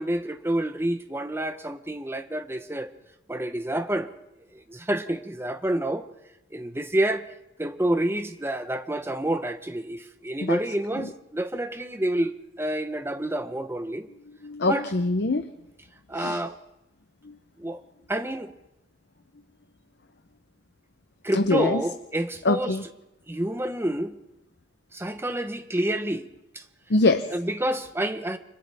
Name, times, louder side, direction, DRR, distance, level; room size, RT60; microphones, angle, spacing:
voice 1, 0.0-2.9 3.3-4.1 4.5-6.0 6.5-7.3 7.6-14.1 14.7-14.8 16.1-16.6 17.6-17.8 18.1-18.5 21.2-22.7 23.3-24.2 24.9-26.3 26.5-26.6 27.3-28.4, right 1 dB, 15° right, 1.0 m, -28 dB
voice 2, 14.4-15.5 16.1-16.4 17.2-17.3 21.3-21.8 22.4-22.8 26.9-27.3, left 2 dB, 65° left, 0.8 m, -24 dB
30.0 x 25.5 x 3.6 m
head